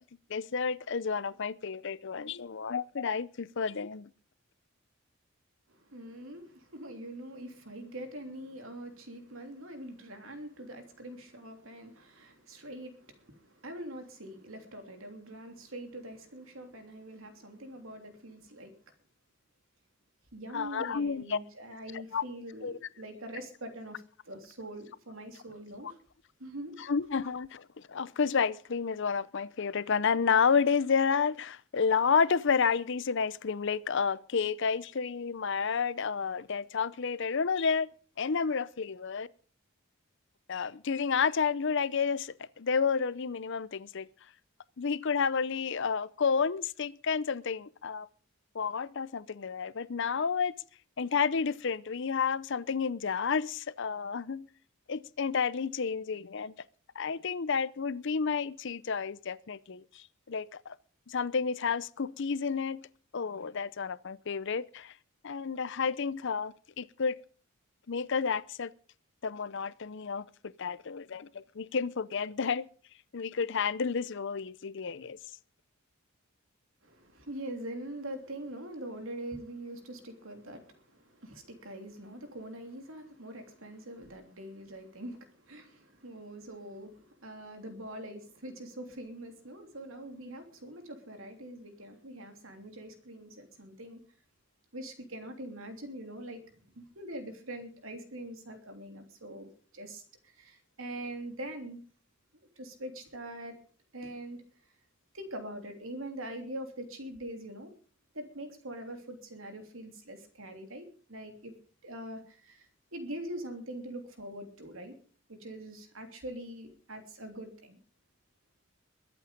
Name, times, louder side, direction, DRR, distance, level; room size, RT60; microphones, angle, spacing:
voice 1, 0.3-4.1 20.5-21.4 22.1-22.2 22.6-22.7 26.8-37.9 38.2-39.3 40.5-44.1 44.8-48.1 48.5-50.5 51.0-54.5 54.9-56.5 57.0-60.7 61.1-62.8 63.1-64.9 65.2-67.2 67.9-68.7 69.2-72.7 73.1-75.2, left 5 dB, 60° left, 0.6 m, -30 dB
voice 2, 5.7-18.8 20.3-26.0 26.4-26.7 76.8-94.0 94.7-101.8 102.3-103.6 103.9-104.4 105.1-107.7 108.1-111.5 111.8-115.0 115.3-117.8, right 1 dB, 70° right, 3.2 m, -43 dB
22.0 x 8.5 x 5.2 m
head